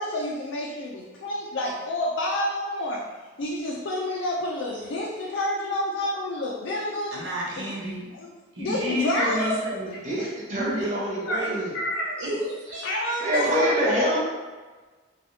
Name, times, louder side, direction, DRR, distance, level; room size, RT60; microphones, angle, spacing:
voice 1, 0.0-3.0 3.4-7.2 7.6-7.7 8.1-8.3 8.6-9.6 9.9-10.3 11.3-12.2 12.8-13.9, left 1 dB, 70° left, -4 dB, 0.4 m, -29 dB
voice 2, 7.1-8.1 8.5-9.9 10.5-10.9 12.2-12.9 13.2-13.5, right 1 dB, 70° right, -5 dB, 0.9 m, -31 dB
voice 3, 10.0-11.7 13.2-14.2, equal, 40° right, -5 dB, 0.8 m, -25 dB
3.2 x 2.3 x 2.7 m, 1.3 s
head